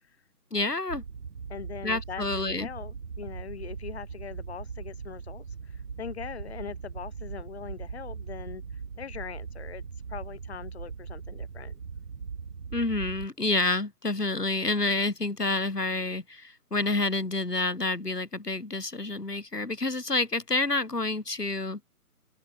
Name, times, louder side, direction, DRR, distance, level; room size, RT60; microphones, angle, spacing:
voice 1, 0.5-1.0 1.8-2.7 12.7-21.8, left 2 dB, 85° left, 5.1 m, -28 dB
sound 1, 0.9-13.3, right 5 dB, 55° right, 3.9 m, -40 dB
voice 2, 1.5-11.8, left 7 dB, 40° left, 7.1 m, -41 dB
open air
figure-of-eight pair, 150°, 46 cm